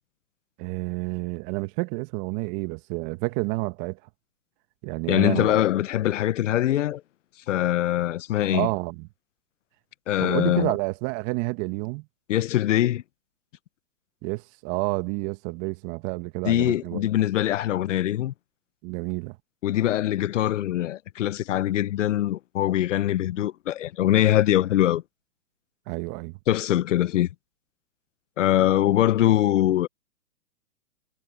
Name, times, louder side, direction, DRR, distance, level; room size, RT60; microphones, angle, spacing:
voice 1, 0.6-4.0 4.8-5.6 8.5-9.1 10.2-12.1 14.2-17.1 18.8-19.3 25.9-26.4, right 26 dB, 35° right, 1.9 m, -29 dB
voice 2, 5.1-7.0 7.5-8.7 10.1-10.7 12.3-13.0 16.4-18.3 19.6-25.0 26.5-27.3 28.4-29.9, left 13 dB, 60° left, 0.9 m, -23 dB
hypercardioid pair, 130°, 41 cm